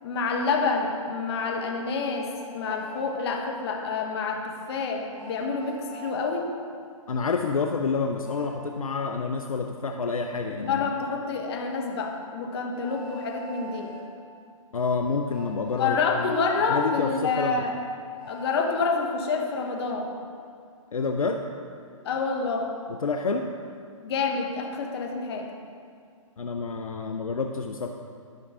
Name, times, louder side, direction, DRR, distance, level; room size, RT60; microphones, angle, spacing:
voice 1, 0.0-6.5 10.7-13.9 15.8-17.7 18.3-20.1 22.0-22.7 24.0-25.5, left 4 dB, 50° left, 2 dB, 1.3 m, -28 dB
Train, 2.3-3.1 5.1-6.2 8.2-8.6 10.6-10.8 12.8-14.0 15.3-16.9 18.2-18.7, right 3 dB, 5° right, 1.8 m, -43 dB
voice 2, 7.1-10.9 14.7-16.3 16.7-17.6 20.9-21.4 22.9-23.5 26.4-27.9, left 4 dB, 85° left, 4 dB, 0.6 m, -28 dB
11.5 x 5.9 x 3.7 m, 2.3 s
figure-of-eight pair, 130°, 18 cm